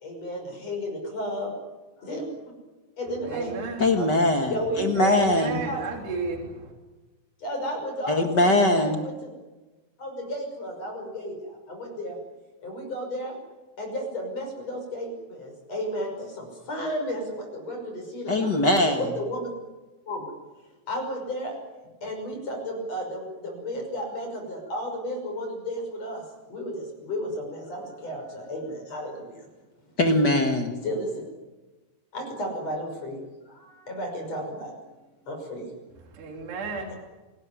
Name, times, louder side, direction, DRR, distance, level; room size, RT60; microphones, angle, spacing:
voice 1, 0.0-1.5 2.0-2.2 3.0-3.5 3.9-4.1 4.5-4.9 5.7-5.8 7.4-9.1 10.0-11.3 11.7-12.2 12.6-13.3 13.8-16.1 16.4-17.2 17.5-17.8 18.1-19.5 20.1-20.2 20.9-21.5 22.0-26.2 26.5-26.7 27.0-29.1 30.8-31.1 32.1-33.2 33.9-34.7 35.3-35.7, equal, 35° left, 2 dB, 7.0 m, -33 dB
voice 2, 3.3-4.0 4.9-6.7 36.0-36.9, right 4 dB, 70° right, 0 dB, 5.5 m, -33 dB
voice 3, 3.8-4.5 4.8-5.6 8.1-9.0 18.3-19.0 30.0-30.8, left 1 dB, 55° left, 5 dB, 1.2 m, -21 dB
27.0 x 19.5 x 9.8 m, 1.2 s
omnidirectional pair, 4.9 m